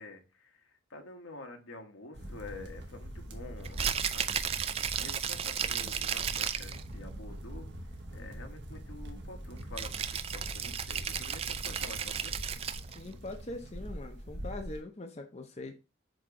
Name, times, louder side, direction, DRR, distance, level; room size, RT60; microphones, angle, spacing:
voice 1, 0.0-4.4 5.0-7.7 8.1-12.3, left 2 dB, 85° left, 1.3 m, -48 dB
sound 1, 2.1-14.8, equal, 60° right, 1.1 m, -43 dB
Rattle (instrument), 3.6-6.8 9.8-13.0, right 8 dB, 30° right, 0.3 m, -34 dB
voice 2, 12.9-15.8, left 2 dB, 35° left, 0.6 m, -42 dB
7.6 x 2.9 x 4.8 m
head